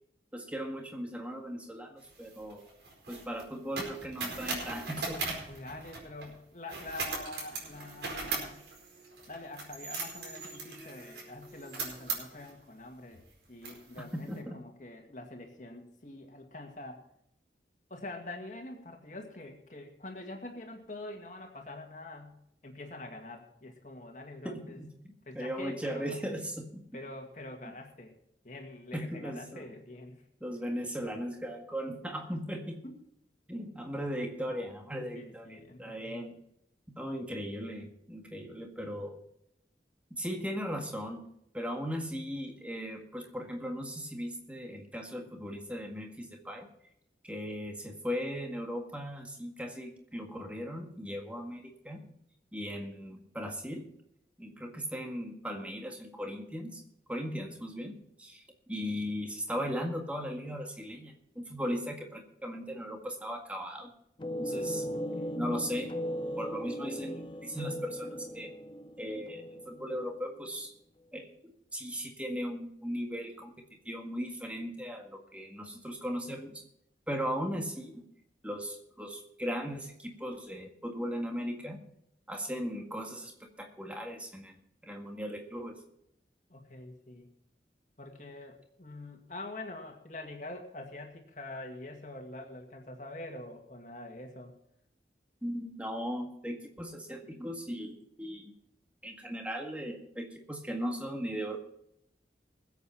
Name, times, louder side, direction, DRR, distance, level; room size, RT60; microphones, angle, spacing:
voice 1, 0.3-2.6 3.1-5.4 14.0-14.6 24.4-26.8 28.9-29.7 30.4-32.8 33.5-36.3 36.9-39.2 40.1-41.3 41.5-46.7 47.2-52.1 52.5-53.9 54.4-56.8 57.1-63.9 64.4-64.9 65.4-65.9 66.4-68.5 69.0-70.7 71.1-73.5 73.9-76.6 77.1-78.0 78.4-81.8 82.3-84.6 84.8-85.8 95.4-98.5 99.0-101.6, equal, 10° right, 2 dB, 1.7 m, -38 dB
sound 1, 2.0-6.3 6.7-12.5 13.1-13.2 13.6-14.3, right 3 dB, 75° right, 4.5 m, -39 dB
voice 2, 5.5-8.7 9.3-13.2 13.5-17.0 17.9-24.8 25.3-26.2 26.9-28.2 28.4-30.2 32.8-32.9 35.0-36.4 64.5-65.4 86.5-87.3 88.0-94.5, left 2 dB, 45° left, 3 dB, 2.0 m, -45 dB
sound 2, 64.2-70.3, equal, 30° left, 0.6 m, -38 dB
20.5 x 8.2 x 4.3 m, 0.76 s
head